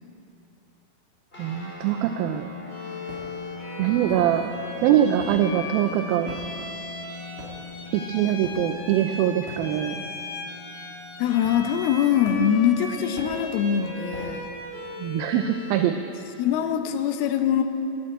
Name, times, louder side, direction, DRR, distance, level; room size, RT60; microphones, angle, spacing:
sound 1, 1.3-13.1, left 4 dB, 15° left, 3.1 m, -42 dB
voice 1, 1.4-2.5 3.8-4.5 4.8-6.4 7.9-10.0 15.0-16.0, right 11 dB, 80° right, 7 dB, 2.3 m, -23 dB
Bowed string instrument, 2.7-16.0, left 2 dB, 45° left, 2.6 m, -38 dB
sound 2, 3.1-3.5 4.1-4.7 5.0-10.1 10.4-10.7 11.4-11.9 12.2-14.5, right 1 dB, 55° right, 4.2 m, -44 dB
voice 2, 11.2-14.5 15.3-15.4 16.4-17.6, left 9 dB, 80° left, 6 dB, 2.7 m, -23 dB
12.0 x 11.5 x 8.8 m, 2.8 s
omnidirectional pair, 4.5 m